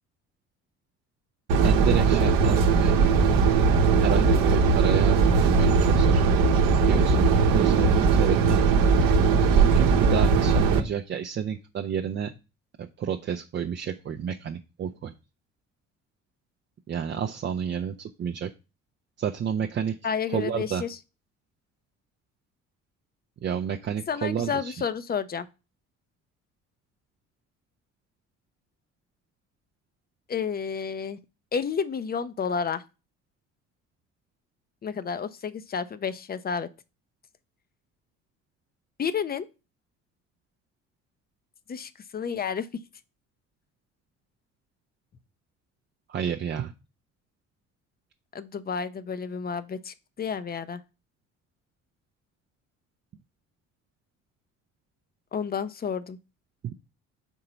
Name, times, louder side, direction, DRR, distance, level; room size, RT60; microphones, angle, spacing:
sound 1, 1.5-10.8, right 5 dB, 55° right, 0.9 m, -20 dB
voice 1, 1.6-2.9 4.0-6.3 6.8-8.8 9.7-12.3 12.8-15.1 16.9-18.5 19.2-20.0 20.3-20.8 23.4-24.7 46.1-46.7 56.6-56.7, right 8 dB, 30° right, 0.5 m, -30 dB
voice 2, 20.0-21.0 24.1-25.5 30.3-31.2 31.5-32.8 34.8-36.7 39.0-39.5 41.7-42.7 48.3-50.8 55.3-56.2, left 6 dB, 25° left, 0.6 m, -30 dB
4.5 x 3.8 x 5.5 m
figure-of-eight pair, 50°, 39 cm